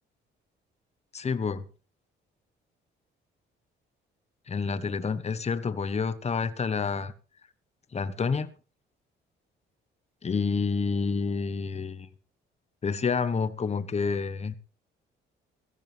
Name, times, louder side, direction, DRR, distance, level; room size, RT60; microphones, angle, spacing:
voice 1, 1.1-1.6 4.5-7.1 7.9-8.5 10.2-12.1 12.8-14.6, left 5 dB, 35° left, 14 dB, 1.1 m, -28 dB
16.5 x 14.0 x 3.4 m, 0.34 s
cardioid pair, 90°, 20 cm